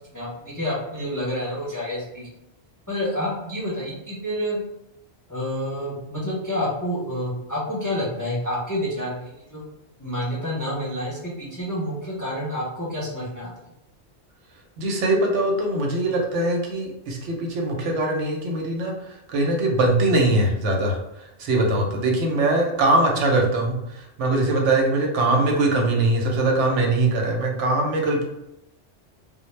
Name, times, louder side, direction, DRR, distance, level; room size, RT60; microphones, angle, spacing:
voice 1, 0.1-2.3 2.9-4.6 5.3-9.6 10.0-13.5, equal, 25° left, -7 dB, 0.4 m, -28 dB
voice 2, 14.8-21.0 21.4-28.2, right 2 dB, 85° right, 1 dB, 0.9 m, -22 dB
2.0 x 2.0 x 3.1 m, 0.84 s
omnidirectional pair, 1.2 m